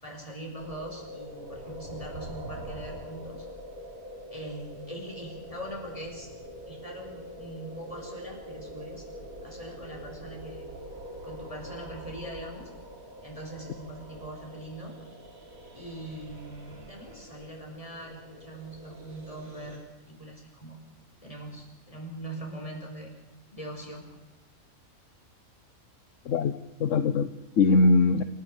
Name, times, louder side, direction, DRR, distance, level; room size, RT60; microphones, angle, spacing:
voice 1, 0.0-3.5 4.3-6.3 6.7-9.0 9.4-10.7 11.2-12.7 13.2-15.0 15.7-20.8 21.2-23.1 23.5-24.0, right 1 dB, 25° left, 1 dB, 6.0 m, -42 dB
sound 1, 0.6-19.8, equal, 80° right, 3.9 m, -44 dB
voice 2, 26.2-28.2, left 3 dB, 65° left, 11 dB, 1.2 m, -22 dB
27.5 x 15.0 x 8.1 m, 1.1 s
omnidirectional pair, 1.4 m